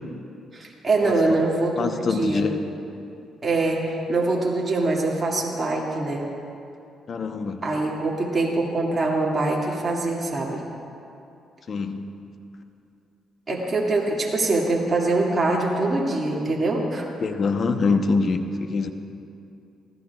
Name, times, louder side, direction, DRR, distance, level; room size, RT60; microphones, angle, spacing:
voice 1, 0.5-2.5 3.4-6.3 7.6-10.6 13.5-17.1, right 2 dB, 30° right, -4 dB, 2.1 m, -24 dB
voice 2, 1.8-2.6 7.1-7.6 11.7-12.0 17.2-18.9, left 4 dB, 50° left, 7 dB, 0.8 m, -24 dB
23.0 x 15.5 x 2.4 m, 2.7 s
cardioid pair, 90°, 0 cm